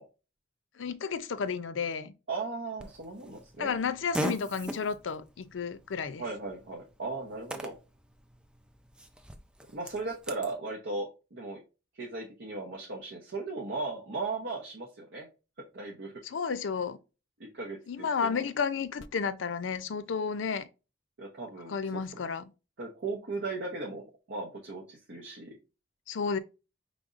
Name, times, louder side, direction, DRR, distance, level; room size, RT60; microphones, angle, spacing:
voice 1, 0.8-2.1 3.6-6.2 16.2-17.0 17.9-20.7 21.7-22.5 26.1-26.4, left 6 dB, 85° left, 0.5 m, -32 dB
voice 2, 2.3-3.7 6.2-7.7 9.7-11.6 12.0-15.3 15.7-16.1 17.4-18.4 21.2-22.2 22.8-25.6, right 3 dB, 70° right, 0.9 m, -37 dB
Fart, 2.8-10.5, equal, 5° right, 0.4 m, -41 dB
5.0 x 3.4 x 2.5 m
head